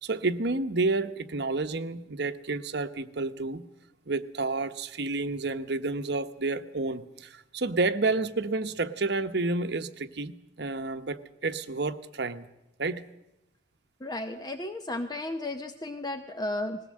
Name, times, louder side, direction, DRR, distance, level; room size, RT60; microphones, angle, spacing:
voice 1, 0.0-3.6 4.1-12.5 12.8-13.0, right 3 dB, 60° right, 10 dB, 1.0 m, -30 dB
voice 2, 14.0-16.8, left 2 dB, 20° left, 7 dB, 0.7 m, -34 dB
20.5 x 17.0 x 7.6 m, 0.88 s
head